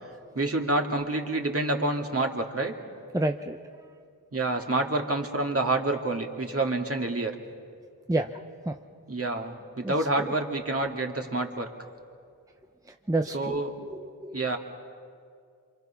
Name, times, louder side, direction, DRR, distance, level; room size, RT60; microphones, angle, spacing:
voice 1, 0.3-2.7 4.3-7.3 9.1-11.7 13.3-13.8 14.3-14.6, right 2 dB, 40° right, 2 dB, 2.3 m, -28 dB
voice 2, 3.1-3.6 8.1-8.8 9.8-9.9 10.2-10.3 13.1-13.6 13.9-14.4, right 2 dB, 10° right, 5 dB, 0.7 m, -29 dB
27.5 x 25.5 x 5.8 m, 2.3 s
cardioid pair, 60°, 36 cm